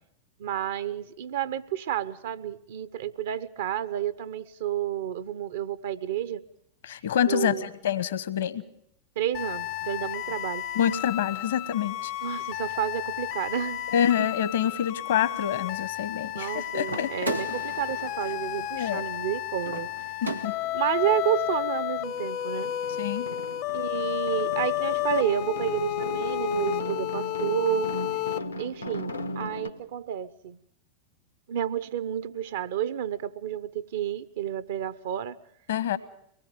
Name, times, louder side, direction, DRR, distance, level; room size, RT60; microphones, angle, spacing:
voice 1, 0.4-6.4 7.3-7.7 9.2-10.6 12.2-13.9 16.3-19.9 20.7-22.7 23.7-27.9 28.6-30.6 31.5-35.4, right 11 dB, 55° right, 0.9 m, -30 dB
voice 2, 6.8-8.6 10.7-12.1 13.9-17.3 18.7-19.1 20.2-20.6 23.0-23.3 35.7-36.0, left 9 dB, 60° left, 1.2 m, -27 dB
sound 1, 9.3-28.4, left 13 dB, 40° left, 0.8 m, -32 dB
sound 2, 16.8-20.9, right 1 dB, 90° right, 1.1 m, -37 dB
sound 3, 18.5-18.6 18.9-20.1 20.4-29.7, left 1 dB, 85° left, 1.5 m, -39 dB
24.0 x 19.5 x 6.8 m
figure-of-eight pair, 90°, 0 cm